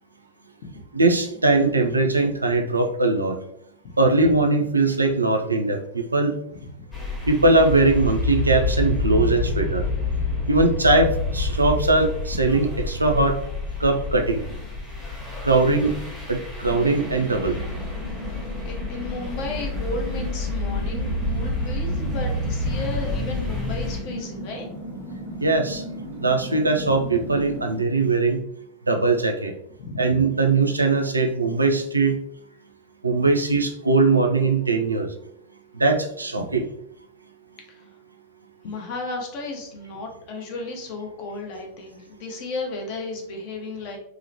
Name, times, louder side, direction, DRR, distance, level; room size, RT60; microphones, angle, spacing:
voice 1, 0.9-3.4 4.0-6.4 7.3-9.8 10.5-13.4 13.8-14.4 15.4-15.9 16.3-17.6 25.4-25.8 26.2-28.4 28.9-29.5 30.0-32.2 33.0-35.1 35.7-36.7, right 3 dB, 80° right, 4 dB, 0.3 m, -20 dB
sound 1, 6.9-24.0, left 2 dB, 15° left, 0.9 m, -28 dB
sound 2, 16.6-27.8, right 1 dB, 80° left, 1.3 m, -36 dB
voice 2, 18.6-24.7 26.8-26.9 29.8-30.0 33.2-33.3 36.3-36.5 37.7-37.9 38.6-44.0, left 3 dB, 45° left, 1 dB, 0.7 m, -34 dB
2.9 x 2.1 x 2.6 m, 0.74 s
figure-of-eight pair, 90°, 0 cm